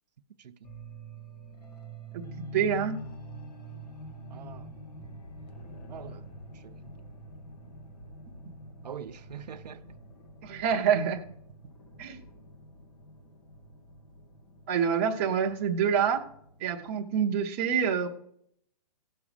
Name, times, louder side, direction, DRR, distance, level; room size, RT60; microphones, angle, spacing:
sound 1, 0.6-17.0, right 1 dB, 70° left, 2.2 m, -46 dB
voice 1, 2.5-3.0 10.4-11.2 12.0-12.2 14.7-16.2 16.6-18.1, right 7 dB, 20° right, 0.7 m, -26 dB
voice 2, 4.3-4.7 5.9-6.2 6.6-6.7 8.8-10.0, right 8 dB, 80° right, 0.8 m, -43 dB
17.0 x 6.2 x 5.0 m
hypercardioid pair, 175°, 21 cm